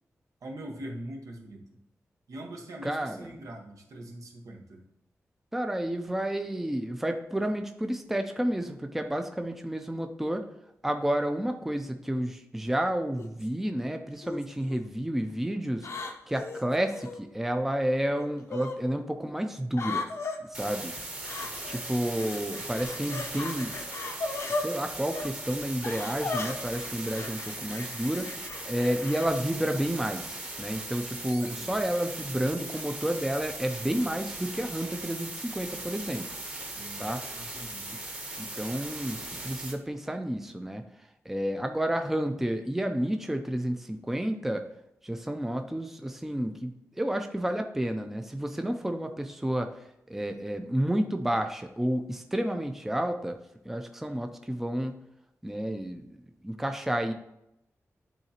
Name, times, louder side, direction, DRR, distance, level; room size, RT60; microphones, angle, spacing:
voice 1, 0.4-1.7 2.3-4.8 31.3-31.8 36.7-37.1 37.4-37.9, right 1 dB, 85° right, 1 dB, 1.1 m, -42 dB
voice 2, 2.8-3.3 5.5-10.4 10.8-15.9 16.3-20.1 20.4-20.9 21.6-23.8 24.5-28.3 28.7-36.3 37.0-37.5 38.4-40.8 41.3-44.7 45.0-49.7 50.1-53.4 53.6-55.0 55.4-56.2 56.4-57.1, right 1 dB, 5° right, 6 dB, 0.4 m, -30 dB
sound 1, 13.2-13.5 14.2-14.8 15.8-17.2 18.2-18.8 19.7-20.4 21.2-21.9 22.1-24.7 25.1-25.3 25.8-29.3, left 3 dB, 60° left, 0.6 m, -36 dB
sound 2, 20.5-39.7, right 2 dB, 25° right, 1.0 m, -39 dB
11.0 x 3.7 x 2.9 m, 0.82 s
wide cardioid pair, 145°, 5 cm